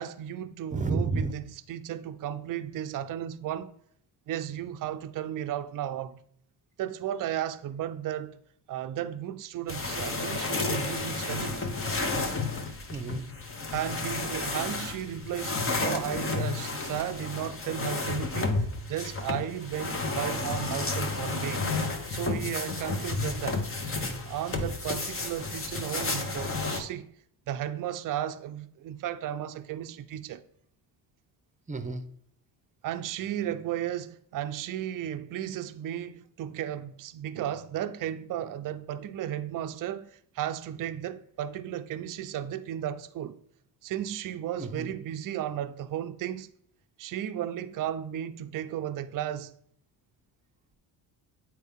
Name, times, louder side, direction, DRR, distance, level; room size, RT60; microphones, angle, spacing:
voice 1, 0.0-3.7 4.3-6.2 6.8-8.4 8.7-11.7 13.7-21.7 22.1-23.6 24.2-27.1 27.5-30.4 32.8-43.4 43.8-46.5 47.0-49.5, right 11 dB, 50° right, 0.5 m, -34 dB
voice 2, 0.7-1.3 12.9-13.3 31.7-32.1 44.6-44.9, right 3 dB, 15° right, 0.8 m, -31 dB
sound 1, 9.7-26.8, left 3 dB, 30° left, 1.1 m, -32 dB
8.1 x 4.7 x 3.6 m
cardioid pair, 95°, 44 cm